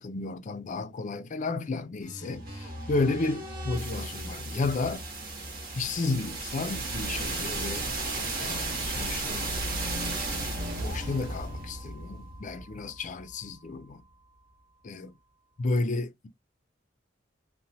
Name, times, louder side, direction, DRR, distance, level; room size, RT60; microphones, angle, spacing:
voice 1, 0.0-5.0 5.7-7.9 8.4-9.5 10.8-14.0 14.8-15.1 15.6-16.3, left 3 dB, 40° left, 0.4 m, -32 dB
sound 1, 2.0-13.9, right 2 dB, 50° right, 1.0 m, -35 dB
2.9 x 2.1 x 2.6 m
head